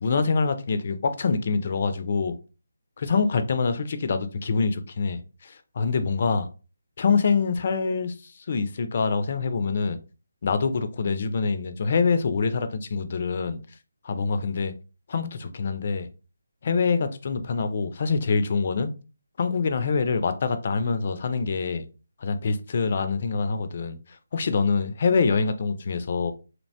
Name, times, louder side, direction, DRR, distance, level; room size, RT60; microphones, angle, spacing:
voice 1, 0.0-2.3 3.0-6.5 7.0-8.1 8.5-10.0 10.4-13.6 14.0-14.7 15.1-16.1 16.6-18.9 19.4-21.8 22.2-24.0 24.3-26.3, left 4 dB, 45° left, 0.4 m, -25 dB
2.8 x 2.1 x 2.7 m
figure-of-eight pair, 165°, 0 cm